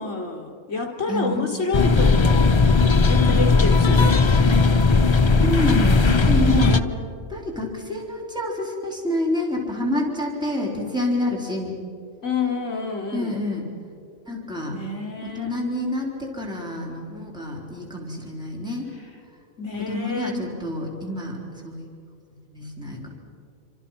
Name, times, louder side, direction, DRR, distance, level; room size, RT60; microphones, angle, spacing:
voice 1, 0.0-2.6 3.1-4.4 12.2-13.4 14.7-15.6 18.9-19.1 19.6-20.5, left 4 dB, 60° left, 0 dB, 3.9 m, -28 dB
voice 2, 1.1-1.5 5.4-6.9 7.3-11.8 13.1-13.7 14.3-14.7 15.2-18.9 19.8-21.4 21.6-21.8 22.5-23.1, left 1 dB, 5° right, -2 dB, 4.0 m, -27 dB
sound 1, 1.7-6.8, left 4 dB, 30° left, 0.6 m, -17 dB
28.0 x 26.0 x 5.8 m, 2.3 s
omnidirectional pair, 1.4 m